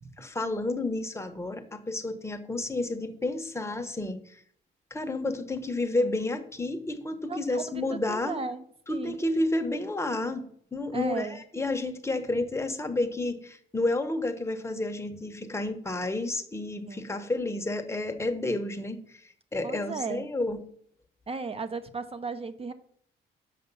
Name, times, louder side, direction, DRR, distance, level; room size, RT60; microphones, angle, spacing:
voice 1, 0.2-4.2 4.9-8.4 8.9-10.5 10.7-19.0 19.5-20.6, left 2 dB, 15° left, 6 dB, 1.0 m, -30 dB
voice 2, 7.3-8.6 8.9-9.2 10.9-11.4 16.9-17.1 19.6-20.2 21.3-22.7, right 4 dB, 30° right, 11 dB, 0.8 m, -35 dB
6.8 x 5.3 x 5.4 m, 0.64 s
cardioid pair, 90°, 20 cm